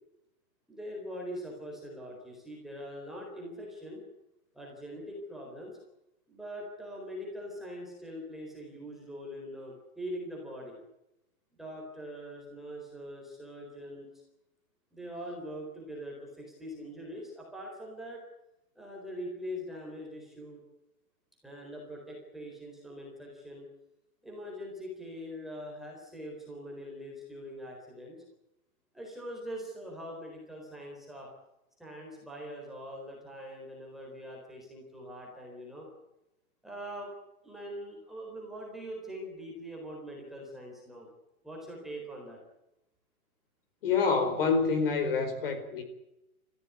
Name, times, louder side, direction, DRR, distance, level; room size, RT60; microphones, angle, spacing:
voice 1, 0.7-4.0 4.5-5.8 6.3-10.8 11.6-14.1 14.9-18.2 18.8-20.6 21.4-23.7 24.2-28.2 28.9-31.3 31.8-35.9 36.6-37.1 37.4-41.1 41.4-42.4, equal, ahead, 4.0 m, -42 dB
voice 2, 43.8-45.8, left 5 dB, 40° left, 4.6 m, -27 dB
28.0 x 15.5 x 9.5 m
hypercardioid pair, 175°, 43 cm